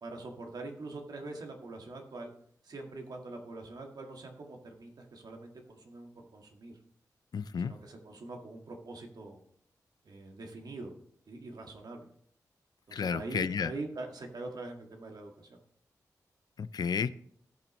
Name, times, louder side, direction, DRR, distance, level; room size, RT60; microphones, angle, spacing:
voice 1, 0.0-2.3 2.6-6.8 7.6-9.4 10.0-10.9 11.3-12.1 12.9-15.6, right 2 dB, 70° right, 2 dB, 1.8 m, -43 dB
voice 2, 7.3-7.7 12.9-13.7 16.6-17.1, left 6 dB, 75° left, 16 dB, 0.5 m, -32 dB
16.5 x 5.8 x 3.2 m, 0.64 s
cardioid pair, 50°, 7 cm